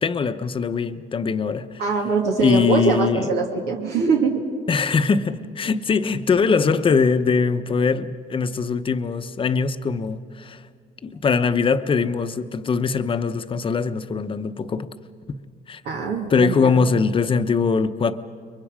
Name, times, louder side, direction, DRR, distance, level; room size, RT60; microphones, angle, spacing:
voice 1, 0.0-1.8 2.4-3.3 4.7-10.6 11.0-14.9 15.7-15.8 16.3-18.2, left 5 dB, 30° left, 0.9 m, -22 dB
voice 2, 1.8-4.4 15.8-16.7, right 4 dB, 80° right, 2.4 m, -22 dB
30.0 x 23.0 x 5.0 m
cardioid pair, 110°, 17 cm